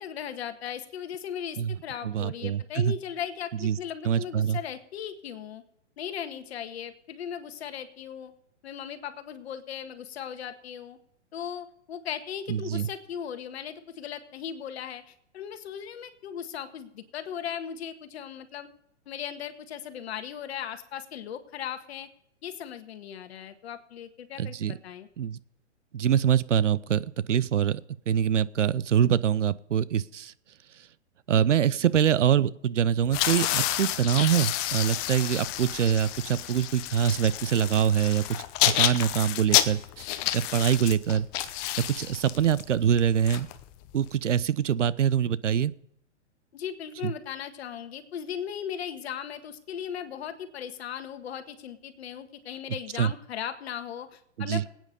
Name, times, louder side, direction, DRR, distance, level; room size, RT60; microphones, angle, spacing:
voice 1, 0.0-5.6 6.0-8.3 8.6-11.0 11.3-18.7 19.0-22.1 22.4-25.1 40.2-40.3 46.5-54.7, left 9 dB, 60° left, 9 dB, 1.6 m, -37 dB
voice 2, 2.0-2.9 3.6-3.8 4.0-4.6 12.5-12.9 24.4-24.8 25.2-25.4 25.9-27.8 28.1-30.3 31.3-38.2 38.6-40.1 40.3-41.3 42.0-43.5 43.9-45.7 47.0-47.1 53.0-53.1 54.4-54.6, right 9 dB, 85° right, 19 dB, 0.7 m, -24 dB
sound 1, 33.0-44.1, left 13 dB, 30° left, 0.9 m, -29 dB
20.0 x 9.1 x 5.3 m, 0.76 s
hypercardioid pair, 125°, 36 cm